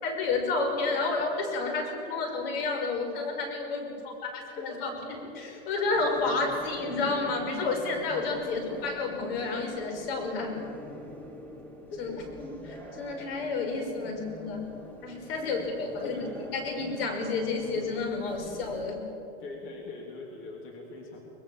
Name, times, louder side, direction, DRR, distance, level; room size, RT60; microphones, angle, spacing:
voice 1, 0.0-4.9 5.4-10.6 12.0-12.1 12.4-14.6 15.0-19.0, left 3 dB, 70° left, 3 dB, 5.9 m, -30 dB
voice 2, 4.5-5.1 8.5-8.7 11.9-12.2 14.0-14.2 15.4-16.5 19.4-21.2, left 3 dB, 40° left, 1 dB, 3.4 m, -43 dB
sound 1, 5.8-18.9, equal, 5° left, 3.5 m, -45 dB
23.0 x 21.0 x 7.3 m, 2.9 s
hypercardioid pair, 115°, 30 cm